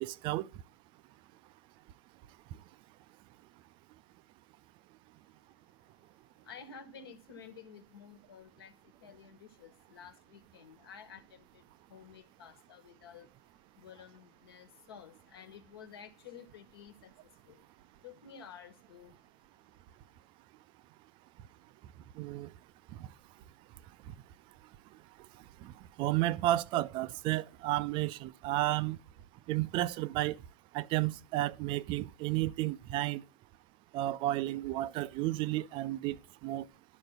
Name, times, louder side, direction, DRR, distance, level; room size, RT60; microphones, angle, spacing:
voice 1, 0.0-0.5 22.2-22.5 26.0-29.0 29.5-30.4 30.7-33.2 33.9-36.2 36.4-36.7, right 16 dB, 35° right, 0.4 m, -32 dB
voice 2, 5.9-19.2 19.7-20.2, left 7 dB, 60° left, 1.5 m, -53 dB
12.0 x 5.0 x 6.7 m
figure-of-eight pair, 85°, 14 cm